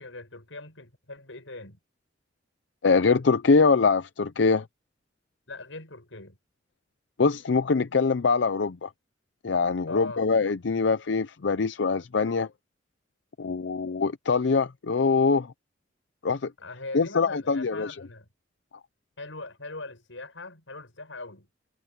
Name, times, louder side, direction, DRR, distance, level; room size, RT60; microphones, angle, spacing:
voice 1, 0.0-1.8 5.5-6.4 9.9-10.3 16.6-18.3 19.2-21.5, left 2 dB, 90° left, 6.8 m, -41 dB
voice 2, 2.8-4.7 7.2-8.9 9.4-12.5 13.4-15.5 16.2-16.5 16.9-18.0, left 4 dB, 65° left, 0.6 m, -23 dB
head